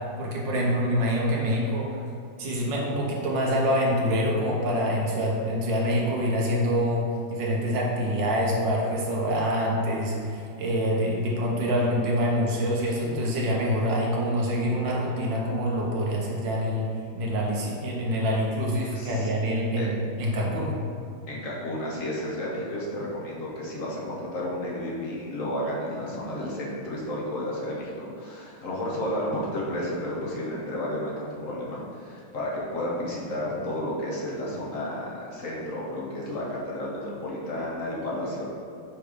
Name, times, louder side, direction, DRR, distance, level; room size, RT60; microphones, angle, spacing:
voice 1, 0.2-2.0 2.4-7.0 7.3-16.9 17.1-20.7, equal, 65° right, -3 dB, 1.7 m, -26 dB
voice 2, 18.9-19.3 19.8-19.9 21.3-38.5, left 1 dB, 50° left, -5 dB, 1.2 m, -32 dB
5.9 x 3.4 x 5.0 m, 2.5 s
omnidirectional pair, 2.2 m